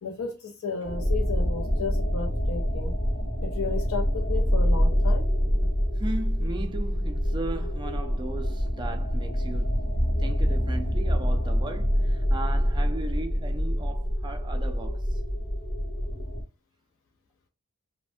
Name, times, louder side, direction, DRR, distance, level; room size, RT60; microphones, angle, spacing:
voice 1, 0.0-2.9 3.4-5.3, left 5 dB, 70° left, 0.5 m, -33 dB
sound 1, 0.8-16.4, equal, 30° left, 0.7 m, -26 dB
voice 2, 6.0-15.2, right 2 dB, 20° right, 0.4 m, -37 dB
3.3 x 2.1 x 2.4 m
head